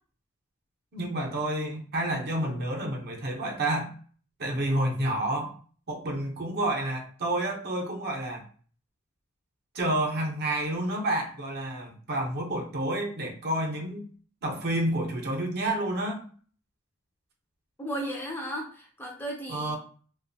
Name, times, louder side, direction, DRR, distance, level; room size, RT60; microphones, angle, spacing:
voice 1, 0.9-3.9 4.4-5.5 5.9-8.4 9.7-14.0 14.4-16.2 19.5-19.8, right 1 dB, 45° right, 2 dB, 0.6 m, -29 dB
voice 2, 17.8-19.8, right 1 dB, 10° left, -1 dB, 0.4 m, -35 dB
2.4 x 2.2 x 2.6 m, 0.43 s
head